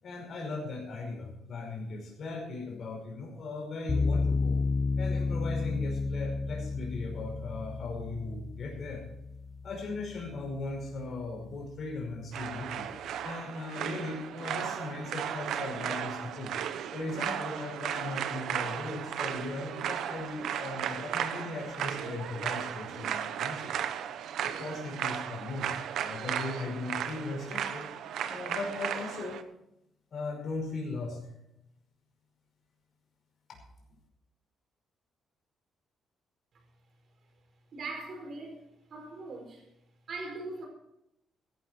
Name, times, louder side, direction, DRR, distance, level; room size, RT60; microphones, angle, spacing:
voice 1, 0.0-4.6 5.0-9.1 9.6-12.9 13.2-16.6 16.9-23.7 24.6-25.7 26.0-27.9 28.3-29.4 30.1-31.3 33.5-33.6, left 3 dB, 50° left, 0 dB, 5.3 m, -38 dB
sound 1, 3.9-11.0, left 4 dB, 30° left, 1.2 m, -32 dB
sound 2, 12.3-29.4, right 9 dB, 80° right, 1.0 m, -35 dB
voice 2, 37.7-38.5 38.9-39.7 40.1-40.7, right 3 dB, 50° right, 2 dB, 5.0 m, -40 dB
16.0 x 12.0 x 4.5 m, 0.83 s
cardioid pair, 130°, 0 cm